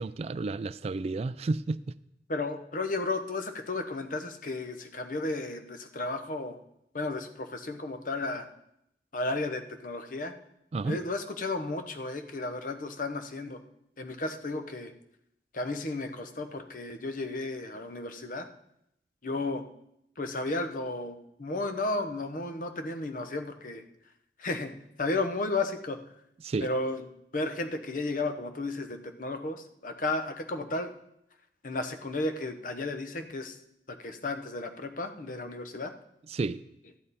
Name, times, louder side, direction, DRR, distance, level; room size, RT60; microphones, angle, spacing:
voice 1, 0.0-1.9 10.7-11.0 26.4-26.7 36.3-36.6, right 3 dB, 35° right, 15 dB, 0.3 m, -31 dB
voice 2, 2.3-6.6 6.9-8.5 9.1-10.3 10.8-13.6 14.0-14.9 15.5-18.5 19.2-19.6 20.2-23.8 24.4-24.7 25.0-26.0 26.6-27.0 27.3-30.9 31.6-33.6 34.0-35.9, left 2 dB, 50° left, 7 dB, 0.9 m, -33 dB
13.0 x 9.0 x 4.2 m, 0.78 s
head